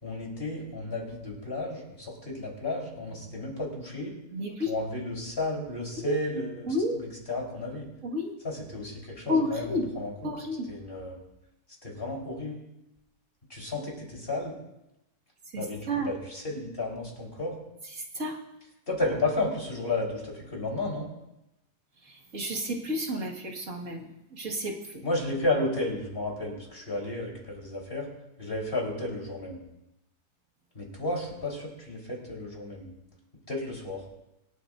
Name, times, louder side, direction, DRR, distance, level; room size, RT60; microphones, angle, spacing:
voice 1, 0.0-4.1 4.7-7.9 8.4-10.3 10.7-11.2 11.8-12.7 13.5-14.5 15.6-17.5 18.9-21.1 25.0-28.1 28.4-29.6 30.7-32.9 33.5-34.0, left 2 dB, 35° left, -2 dB, 4.1 m, -33 dB
voice 2, 4.3-4.7 6.0-6.2 6.7-7.0 8.0-8.3 9.3-10.7 15.5-16.1 17.8-18.4 22.0-25.0, left 1 dB, 50° right, -1 dB, 2.2 m, -31 dB
26.5 x 9.1 x 2.6 m, 0.90 s
omnidirectional pair, 1.7 m